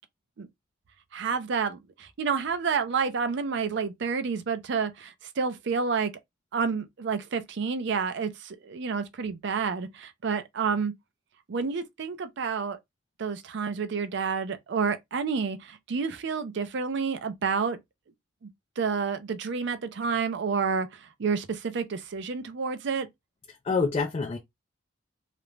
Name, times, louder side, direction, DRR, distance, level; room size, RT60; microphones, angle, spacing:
voice 1, 1.1-6.1 6.5-10.9 11.5-12.8 13.2-17.8 18.4-18.5 18.8-23.1, right 5 dB, 60° right, 0.4 m, -29 dB
voice 2, 23.5-24.4, left 4 dB, 30° left, 0.3 m, -27 dB
2.4 x 2.1 x 3.0 m
head